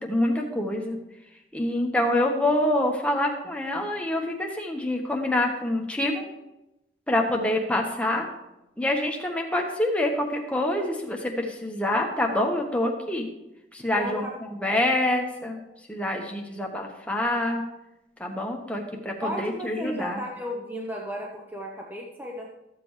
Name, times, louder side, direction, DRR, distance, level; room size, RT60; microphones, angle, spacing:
voice 1, 0.1-1.0 1.5-6.2 7.1-8.3 8.8-13.3 13.7-15.6 15.9-17.6 18.2-20.2, left 1 dB, 5° left, 0 dB, 1.2 m, -26 dB
voice 2, 13.9-14.3 19.2-22.5, equal, 10° right, -1 dB, 0.9 m, -34 dB
13.5 x 7.7 x 3.2 m, 0.93 s
head